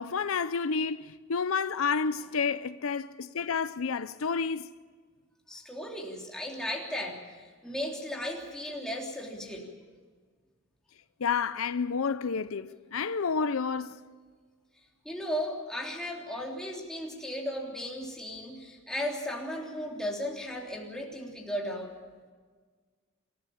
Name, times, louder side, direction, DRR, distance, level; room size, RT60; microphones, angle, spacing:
voice 1, 0.0-4.7 11.2-14.0, left 5 dB, 75° left, 0.6 m, -30 dB
voice 2, 5.5-9.7 15.0-21.9, equal, 5° left, 3.2 m, -36 dB
27.5 x 14.0 x 8.6 m
head